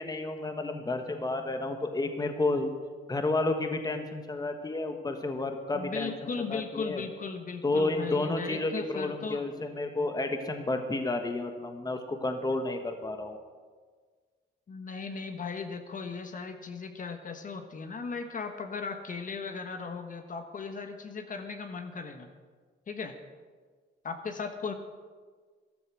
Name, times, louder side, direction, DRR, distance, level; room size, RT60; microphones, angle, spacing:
voice 1, 0.0-2.7 3.1-6.1 6.5-7.0 7.6-13.4, left 2 dB, 20° left, 6 dB, 1.3 m, -31 dB
voice 2, 5.7-9.4 14.7-22.3 22.9-23.2 24.0-24.7, left 5 dB, 40° left, 6 dB, 1.4 m, -37 dB
14.0 x 12.5 x 6.2 m, 1.6 s
cardioid pair, 90°, 20 cm